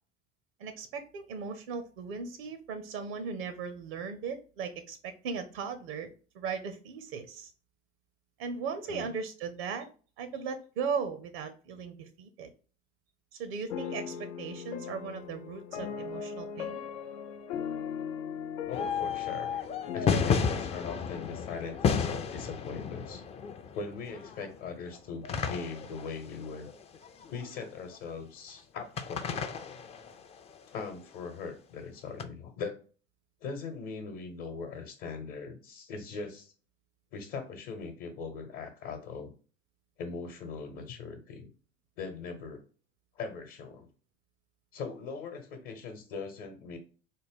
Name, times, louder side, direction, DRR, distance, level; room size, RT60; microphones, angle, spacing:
voice 1, 0.6-7.5 8.4-9.9 10.2-12.5 13.4-16.8, right 5 dB, 70° right, 9 dB, 0.7 m, -37 dB
sound 1, 13.7-22.9, left 7 dB, 80° left, 0.5 m, -40 dB
voice 2, 18.7-19.6 19.9-23.2 23.7-26.7 27.3-29.5 30.7-32.8 33.4-36.5 37.1-39.3 40.0-41.5 42.0-42.6 43.2-43.9 44.7-46.8, left 5 dB, 60° left, 4 dB, 0.9 m, -40 dB
sound 2, 18.7-28.0 29.0-30.8 32.2-32.3, left 6 dB, 20° left, 0.3 m, -33 dB
4.0 x 2.1 x 3.5 m, 0.37 s
hypercardioid pair, 85°, 32 cm